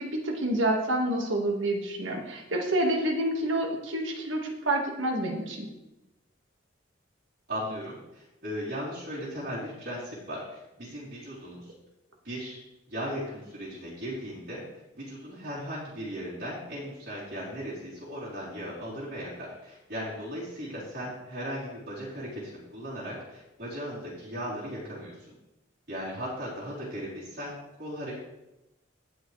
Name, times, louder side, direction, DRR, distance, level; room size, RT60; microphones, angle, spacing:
voice 1, 0.0-5.7, right 1 dB, 70° right, 1 dB, 1.9 m, -28 dB
voice 2, 7.5-11.7 12.2-12.6 12.9-14.6 14.9-25.3 25.9-28.2, equal, 55° right, -10 dB, 3.9 m, -37 dB
17.0 x 6.2 x 3.3 m, 0.94 s
head